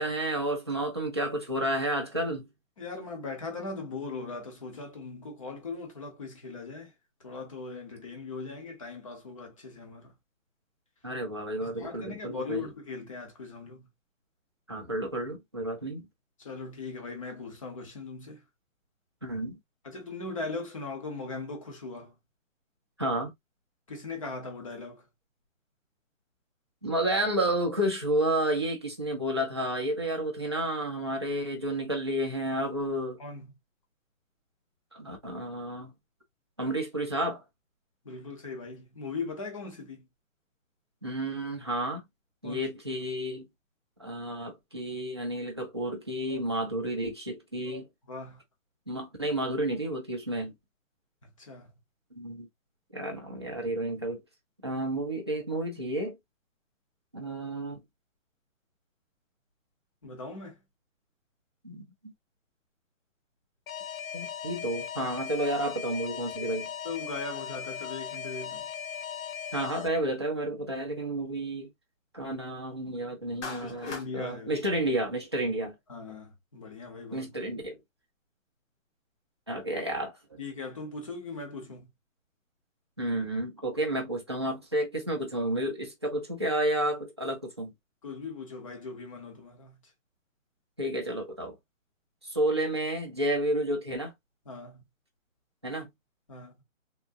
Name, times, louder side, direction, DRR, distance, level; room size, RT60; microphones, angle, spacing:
voice 1, 0.0-2.5 11.0-12.6 14.7-16.1 19.2-19.6 23.0-23.3 26.8-33.2 34.9-35.9 36.6-37.4 41.0-42.0 42.4-43.5 44.0-47.9 48.9-50.5 52.2-52.5 52.9-54.2 54.6-56.2 57.1-57.8 61.6-62.1 64.1-66.7 69.5-71.7 72.1-75.7 77.1-77.8 79.5-80.4 83.0-87.7 90.8-91.6 92.2-94.1 95.6-95.9, right 1 dB, 20° right, 0.4 m, -31 dB
voice 2, 2.8-6.9 7.2-10.2 11.6-13.9 16.4-18.4 19.8-22.2 23.9-25.1 33.2-33.5 38.0-40.1 42.4-42.7 48.0-48.4 51.2-51.7 60.0-60.6 66.8-68.7 73.6-74.6 75.9-77.3 80.4-81.9 88.0-89.9 94.5-94.8 96.3-96.5, left 3 dB, 25° left, 0.7 m, -39 dB
Alarm, 63.7-69.9, left 8 dB, 85° left, 0.6 m, -38 dB
Clapping, 73.4-74.1, left 4 dB, 60° left, 1.0 m, -39 dB
3.5 x 2.0 x 2.5 m
hypercardioid pair, 165°, 40 cm